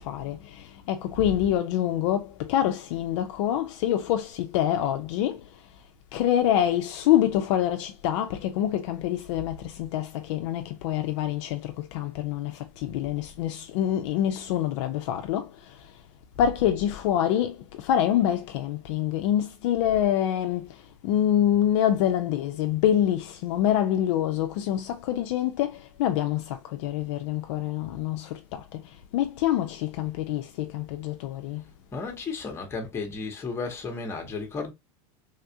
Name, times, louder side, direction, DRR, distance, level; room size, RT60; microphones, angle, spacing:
voice 1, 0.0-5.5 6.1-15.9 16.4-31.6, left 11 dB, 50° left, 0.4 m, -26 dB
voice 2, 31.9-34.7, left 4 dB, 15° left, 0.8 m, -33 dB
3.4 x 2.3 x 2.7 m
supercardioid pair, 155°, 19 cm